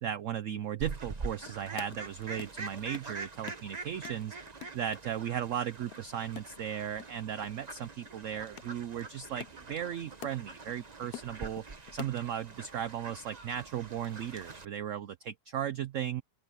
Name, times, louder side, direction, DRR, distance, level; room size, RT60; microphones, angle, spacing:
voice 1, 0.0-4.4 4.7-11.7 11.9-16.2, right 9 dB, 60° right, 0.8 m, -36 dB
Fowl, 0.8-14.7, right 3 dB, 25° right, 1.2 m, -45 dB
sound 1, 1.5-2.7 2.9-3.8 4.0-5.4 5.7-7.1 7.4-7.5 7.8-10.7 11.0-12.3, left 13 dB, 70° left, 1.0 m, -47 dB
open air
omnidirectional pair, 1.9 m